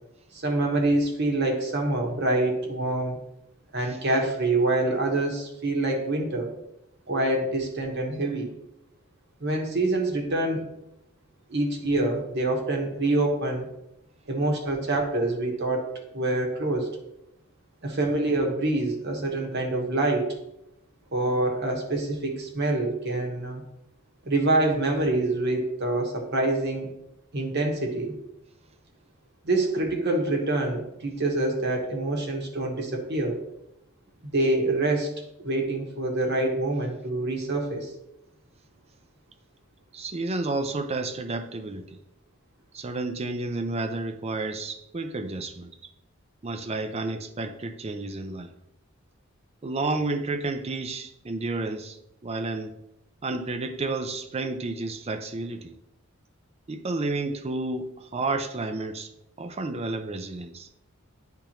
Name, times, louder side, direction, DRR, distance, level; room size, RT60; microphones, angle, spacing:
voice 1, 0.3-3.2 3.7-6.5 7.1-8.5 9.4-10.6 11.5-13.7 14.3-16.9 17.8-20.3 21.1-23.6 24.2-26.9 27.3-28.1 29.4-33.4 34.2-35.1 35.4-37.9, right 2 dB, 50° right, 2 dB, 1.1 m, -26 dB
voice 2, 39.9-41.8 42.7-45.7 46.4-48.5 49.6-52.0 52.2-52.7 53.2-55.7 56.7-59.1 59.4-60.7, right 2 dB, 30° right, 8 dB, 0.5 m, -31 dB
10.0 x 3.5 x 2.9 m, 0.83 s
head